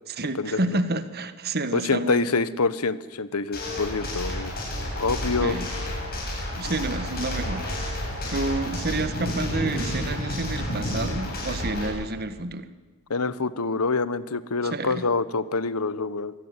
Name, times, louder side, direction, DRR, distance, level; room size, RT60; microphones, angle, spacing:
voice 1, 0.1-2.3 5.4-5.7 6.6-7.7 8.3-12.7 14.6-15.1, right 2 dB, 45° right, 12 dB, 1.5 m, -29 dB
voice 2, 1.7-4.5 5.0-5.6 13.1-16.3, left 4 dB, 85° left, 16 dB, 1.1 m, -26 dB
sound 1, 3.5-11.9, left 1 dB, 45° left, 8.0 m, -30 dB
24.0 x 17.0 x 9.7 m, 1.3 s
head